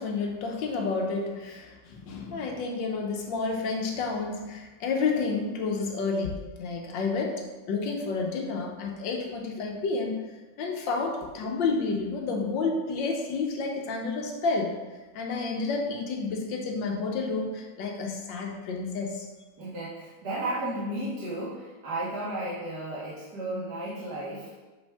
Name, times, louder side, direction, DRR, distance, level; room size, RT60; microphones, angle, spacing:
voice 1, 0.0-10.2 10.6-14.7 15.1-19.3, left 4 dB, 90° left, 2 dB, 1.6 m, -30 dB
voice 2, 19.6-24.5, right 1 dB, 60° right, -9 dB, 2.1 m, -33 dB
6.8 x 5.3 x 3.5 m, 1.2 s
omnidirectional pair, 1.9 m